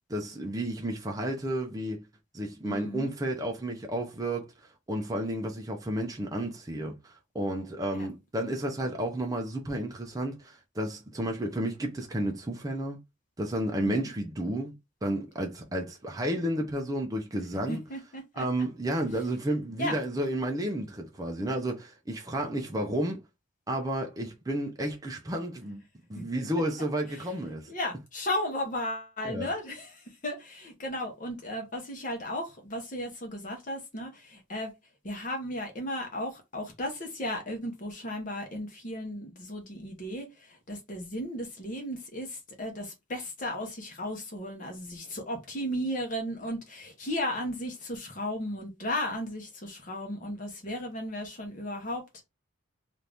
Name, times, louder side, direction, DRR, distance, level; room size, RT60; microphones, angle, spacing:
voice 1, 0.1-2.0 2.3-4.5 4.9-13.0 13.4-14.7 15.0-17.8 18.3-23.2 23.7-25.8 26.1-27.7 29.2-29.5, right 1 dB, 15° right, 0.5 m, -32 dB
voice 2, 2.6-3.1 8.0-8.1 17.7-18.7 19.8-20.0 26.1-26.4 27.7-34.7 35.0-52.2, left 1 dB, 40° left, 0.9 m, -35 dB
2.8 x 2.5 x 3.4 m
head